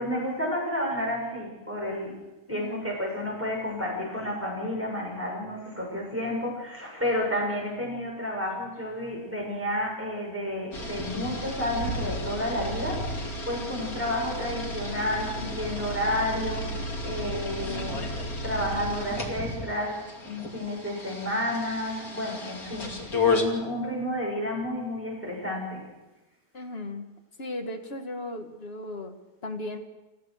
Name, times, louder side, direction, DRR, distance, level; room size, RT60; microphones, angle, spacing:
voice 1, 0.0-2.1 2.5-16.7 17.0-18.0 18.4-25.8, left 1 dB, 10° right, -2 dB, 6.8 m, -31 dB
voice 2, 2.5-3.0 13.7-14.0 17.6-18.1 26.5-27.1 27.4-29.8, left 1 dB, 40° left, 4 dB, 2.2 m, -37 dB
sound 1, 10.7-23.4, left 2 dB, 70° left, 3.3 m, -32 dB
29.0 x 15.5 x 6.5 m, 1.1 s
omnidirectional pair, 1.6 m